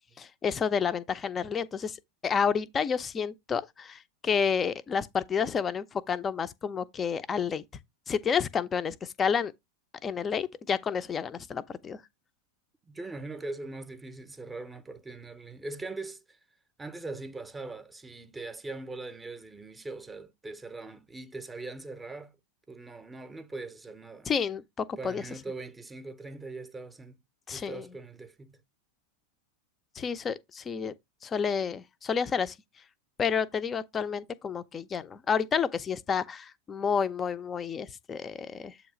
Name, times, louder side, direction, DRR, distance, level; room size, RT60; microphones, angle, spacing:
voice 1, 0.2-2.0 2.2-7.6 8.1-9.5 10.0-12.0 24.3-25.2 27.5-27.9 30.0-30.9 31.2-32.6 33.2-38.7, left 6 dB, 20° left, 0.5 m, -30 dB
voice 2, 12.8-16.4 16.8-22.3 22.7-24.3 25.0-27.2 27.5-28.6, right 3 dB, 10° right, 0.8 m, -41 dB
7.8 x 3.0 x 4.9 m
figure-of-eight pair, 90°, 0 cm